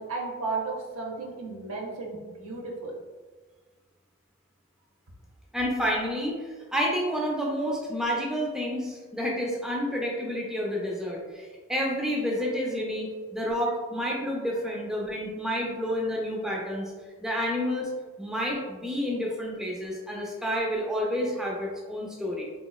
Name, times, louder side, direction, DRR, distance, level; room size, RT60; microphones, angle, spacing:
voice 1, 0.0-2.9, right 3 dB, 75° right, -2 dB, 0.8 m, -34 dB
voice 2, 5.5-16.9 17.2-17.9 18.2-22.4, equal, 5° right, -3 dB, 0.3 m, -29 dB
3.8 x 2.9 x 2.3 m, 1.4 s
head